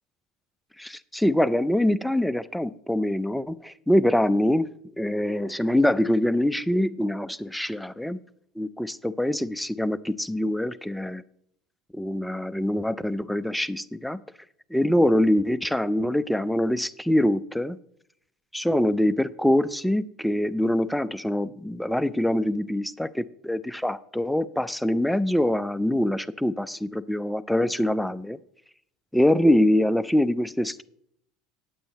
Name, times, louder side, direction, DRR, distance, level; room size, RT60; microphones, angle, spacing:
voice 1, 0.8-4.7 5.0-8.2 8.6-11.2 11.9-14.2 14.7-17.8 18.5-28.4 29.1-30.8, left 1 dB, 5° left, 15 dB, 0.4 m, -24 dB
8.9 x 8.6 x 4.1 m, 0.72 s
hypercardioid pair, 80°, 0 cm